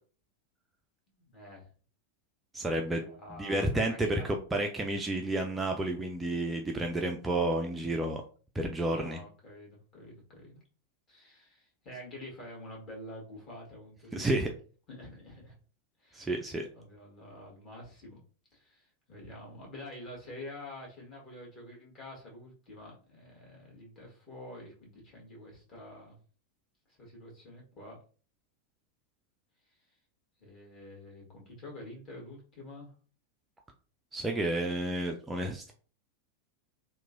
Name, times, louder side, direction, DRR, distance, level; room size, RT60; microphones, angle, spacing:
voice 1, 1.1-1.7 2.8-4.4 8.9-10.6 11.1-14.5 14.9-15.6 16.0-16.4 16.7-18.2 18.5-26.2 26.9-28.0 29.7-29.8 30.4-32.9, left 1 dB, 30° left, -3 dB, 1.3 m, -48 dB
voice 2, 2.5-3.0 3.4-8.2 8.6-9.2 14.1-14.5 16.1-16.7 34.1-35.7, right 1 dB, 10° right, 2 dB, 0.3 m, -31 dB
2.9 x 2.1 x 2.5 m, 0.40 s
figure-of-eight pair, 90°, 0 cm